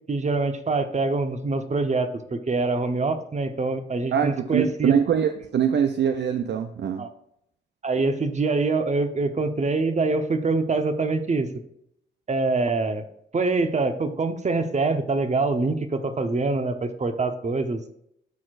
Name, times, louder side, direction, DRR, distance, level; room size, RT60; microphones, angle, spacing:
voice 1, 0.1-5.0 7.0-7.1 7.8-11.5 12.3-13.0 13.3-17.9, right 3 dB, 35° right, 8 dB, 1.0 m, -25 dB
voice 2, 4.1-7.0, right 8 dB, 55° right, 7 dB, 0.5 m, -23 dB
12.0 x 4.5 x 2.5 m, 0.73 s
supercardioid pair, 50°, 21 cm